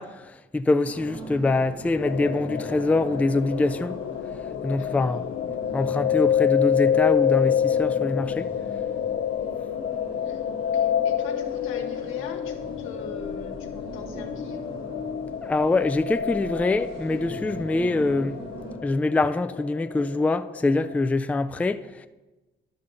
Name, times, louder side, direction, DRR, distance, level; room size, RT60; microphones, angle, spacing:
voice 1, 0.0-4.0 4.6-5.2 5.7-8.5 10.3-10.4 15.4-18.4 18.8-22.1, left 2 dB, 5° left, 0.3 m, -24 dB
sound 1, 0.9-18.8, right 2 dB, 90° right, 2.2 m, -41 dB
sound 2, 2.0-21.1, left 9 dB, 65° left, 0.5 m, -28 dB
voice 2, 4.7-5.1 10.2-15.0, left 6 dB, 90° left, 1.1 m, -42 dB
11.5 x 5.5 x 3.8 m
cardioid pair, 90°, 20 cm